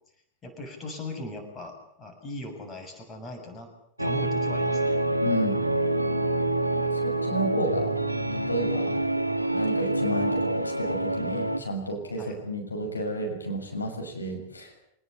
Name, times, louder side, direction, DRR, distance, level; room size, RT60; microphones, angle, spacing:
voice 1, 0.4-3.7 4.0-5.0 12.2-12.4, left 1 dB, 20° left, 5 dB, 7.2 m, -39 dB
sound 1, 4.0-11.6, right 2 dB, 85° right, 1.4 m, -26 dB
voice 2, 5.2-5.6 7.0-8.0 8.3-9.0 9.5-14.7, equal, 80° left, 2 dB, 6.6 m, -31 dB
26.5 x 19.5 x 8.3 m, 0.72 s
figure-of-eight pair, 90°, 0 cm